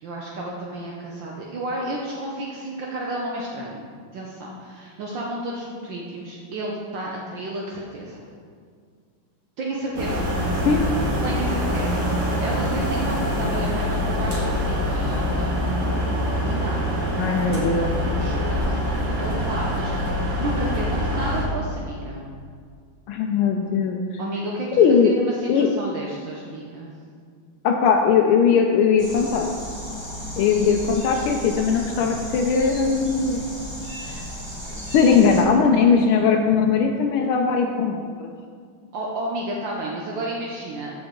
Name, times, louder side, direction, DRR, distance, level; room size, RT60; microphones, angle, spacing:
voice 1, 0.0-3.9 4.1-8.2 9.6-10.3 11.2-12.1 12.4-15.4 16.3-17.2 18.2-18.8 19.1-22.3 24.2-26.9 38.9-40.9, right 1 dB, 65° right, -3 dB, 1.5 m, -32 dB
sound 1, 10.0-21.4, equal, 90° right, 2.4 m, -24 dB
voice 2, 17.2-17.9 23.1-24.2 24.8-25.1 25.5-25.7 27.6-29.5 30.4-33.4 34.9-38.3, left 6 dB, 85° left, 2 dB, 1.5 m, -19 dB
sound 2, 29.0-35.4, equal, 5° right, 1.7 m, -34 dB
13.0 x 4.9 x 3.7 m, 2.1 s
omnidirectional pair, 2.3 m